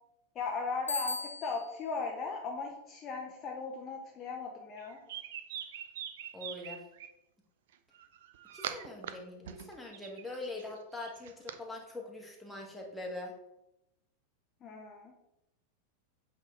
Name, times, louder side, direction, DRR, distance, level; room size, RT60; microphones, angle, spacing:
voice 1, 0.3-5.0 14.6-15.1, left 4 dB, 30° left, 0 dB, 0.8 m, -37 dB
Bicycle bell, 0.9-1.8, left 2 dB, 80° left, 0.4 m, -37 dB
sound 1, 4.8-7.1 7.9-9.1 9.4-11.6, right 9 dB, 55° right, 0.5 m, -43 dB
voice 2, 6.3-6.8 8.5-13.3, left 2 dB, 5° left, -1 dB, 1.5 m, -43 dB
8.0 x 3.8 x 4.1 m, 0.86 s
figure-of-eight pair, 90°, 0 cm